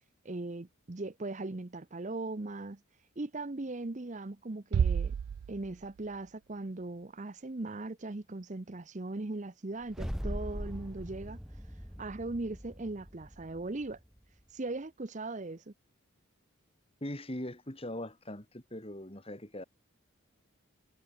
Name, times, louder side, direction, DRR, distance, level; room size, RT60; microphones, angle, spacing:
voice 1, 0.2-2.8 3.2-5.1 5.5-11.4 12.0-14.0 14.5-15.7, right 2 dB, 35° right, 0.7 m, -39 dB
Bass drum, 4.7-6.2, right 7 dB, 90° right, 0.3 m, -30 dB
sound 1, 9.8-14.2, equal, ahead, 1.6 m, -41 dB
voice 2, 17.0-19.6, left 1 dB, 25° left, 2.4 m, -41 dB
head